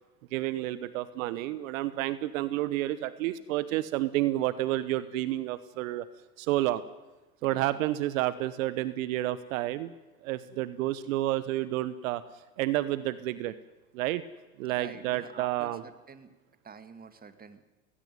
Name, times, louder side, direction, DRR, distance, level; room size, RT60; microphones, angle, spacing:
voice 1, 0.3-6.0 6.4-6.8 7.4-9.9 10.2-12.2 12.6-13.5 13.9-14.2 14.6-15.8, right 15 dB, 70° right, 15 dB, 1.2 m, -30 dB
voice 2, 7.4-7.8 14.7-16.3 16.6-17.6, right 6 dB, 20° right, 10 dB, 2.1 m, -47 dB
19.5 x 16.5 x 9.5 m, 1.1 s
hypercardioid pair, 95°, 42 cm